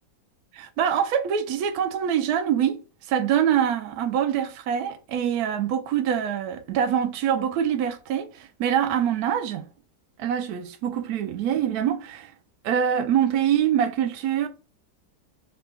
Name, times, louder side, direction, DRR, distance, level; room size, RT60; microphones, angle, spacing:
voice 1, 0.5-2.8 3.1-9.7 10.2-12.3 12.6-14.5, right 9 dB, 70° right, 0.9 m, -24 dB
3.8 x 2.2 x 3.4 m
omnidirectional pair, 2.0 m